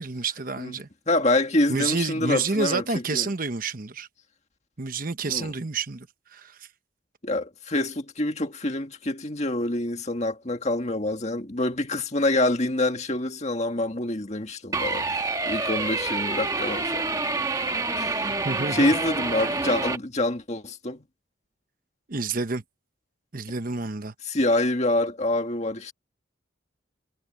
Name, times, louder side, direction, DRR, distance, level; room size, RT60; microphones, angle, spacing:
voice 1, 0.0-0.9 1.7-4.1 4.8-6.1 6.3-6.7 18.4-18.9 22.1-22.6 23.3-24.1, right 4 dB, 45° right, 1.0 m, -29 dB
voice 2, 1.1-2.8 3.1-3.3 5.3-5.5 7.2-17.2 18.0-18.4 18.7-21.0 24.2-25.9, left 2 dB, 35° left, 1.9 m, -26 dB
sound 1, 14.7-20.0, right 3 dB, 20° right, 1.3 m, -27 dB
head